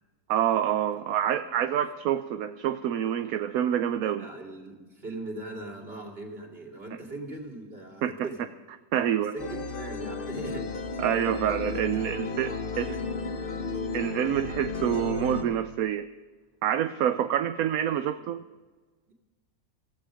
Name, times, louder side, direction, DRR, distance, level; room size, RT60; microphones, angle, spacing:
voice 1, 0.3-4.2 8.0-8.1 8.9-9.3 11.0-13.0 13.9-16.0 16.6-18.4, right 10 dB, 75° right, 10 dB, 1.1 m, -27 dB
voice 2, 0.9-1.8 4.2-8.5 9.0-10.8 11.3-11.5 11.8-13.8 17.2-18.5 19.1-19.2, right 2 dB, 40° right, 1 dB, 2.9 m, -42 dB
sound 1, 9.4-15.4, left 4 dB, 40° left, 1.2 m, -33 dB
16.5 x 15.0 x 5.1 m, 1.3 s
omnidirectional pair, 1.5 m